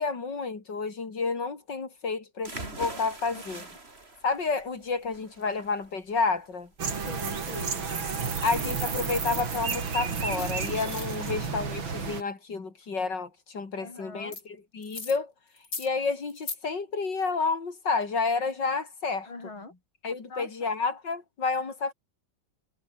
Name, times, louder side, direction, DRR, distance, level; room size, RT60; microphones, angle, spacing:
voice 1, 0.0-3.6 4.2-6.7 8.4-15.3 15.8-19.3 20.0-21.9, left 4 dB, 60° left, 3.9 m, -30 dB
sound 1, 2.4-10.1, right 2 dB, 30° right, 3.9 m, -44 dB
voice 2, 3.3-3.7 7.0-7.9 11.2-11.6 13.7-14.4 19.3-19.8 20.3-20.7, left 3 dB, 80° left, 6.7 m, -44 dB
sound 2, 6.8-12.2, right 5 dB, 75° right, 3.7 m, -31 dB
sound 3, 10.3-10.5 10.8-11.1 14.3-14.4 14.8-15.2 15.6-15.9 16.3-16.6, left 3 dB, 45° left, 4.1 m, -37 dB
omnidirectional pair, 2.2 m